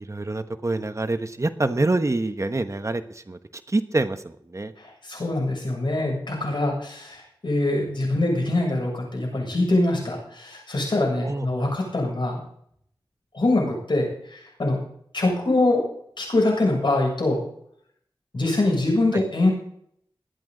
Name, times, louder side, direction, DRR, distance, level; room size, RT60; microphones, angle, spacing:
voice 1, 0.0-3.4 3.7-4.7 11.2-11.5 19.1-19.2, right 2 dB, 35° right, 8 dB, 1.2 m, -26 dB
voice 2, 4.8-12.4 13.3-14.8 15.1-15.8 16.2-17.4 18.3-19.5, left 2 dB, 60° left, -1 dB, 7.4 m, -24 dB
22.0 x 8.7 x 4.0 m, 0.66 s
wide cardioid pair, 60°, 9 cm